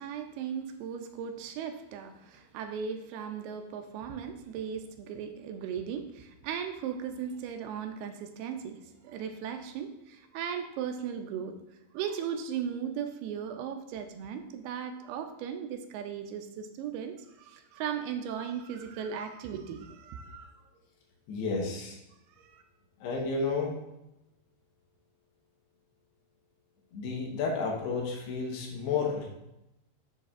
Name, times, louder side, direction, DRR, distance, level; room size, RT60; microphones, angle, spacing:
voice 1, 0.0-11.6 11.9-20.6 22.4-22.6, right 7 dB, 80° right, 6 dB, 2.5 m, -37 dB
voice 2, 21.3-22.0 23.0-23.8 26.9-29.3, left 4 dB, 85° left, 0 dB, 3.2 m, -31 dB
7.5 x 6.7 x 2.4 m, 0.89 s
omnidirectional pair, 4.6 m